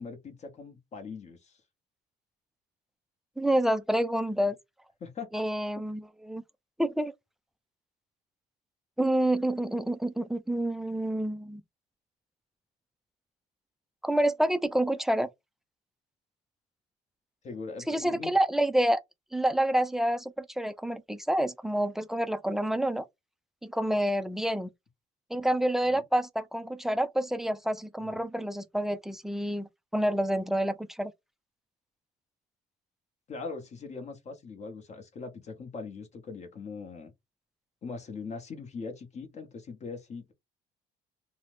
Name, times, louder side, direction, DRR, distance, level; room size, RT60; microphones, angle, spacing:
voice 1, 0.0-1.6 5.0-5.3 17.4-18.3 25.8-26.0 28.0-28.1 33.3-37.1 37.8-40.3, left 4 dB, 45° left, 0.8 m, -41 dB
voice 2, 3.4-4.6 5.3-6.4 6.8-7.1 9.0-11.6 14.0-15.3 17.9-19.0 19.3-23.0 23.6-24.7 25.3-31.1, right 1 dB, ahead, 0.3 m, -28 dB
2.8 x 2.0 x 3.2 m
cardioid pair, 110°, 17 cm